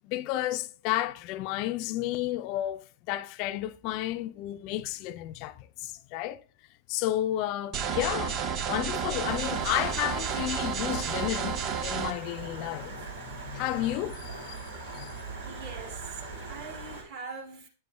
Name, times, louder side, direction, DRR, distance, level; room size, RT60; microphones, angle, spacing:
voice 1, 0.0-6.4 6.9-14.6 14.9-15.2, left 14 dB, 45° left, 0.4 m, -32 dB
sound 1, 7.7-12.1, right 7 dB, 40° right, 0.8 m, -31 dB
Stream, 9.2-17.0, right 3 dB, 80° right, 2.8 m, -41 dB
voice 2, 15.4-17.7, right 4 dB, 55° right, 2.4 m, -42 dB
9.2 x 6.6 x 2.3 m
hypercardioid pair, 100°, 0 cm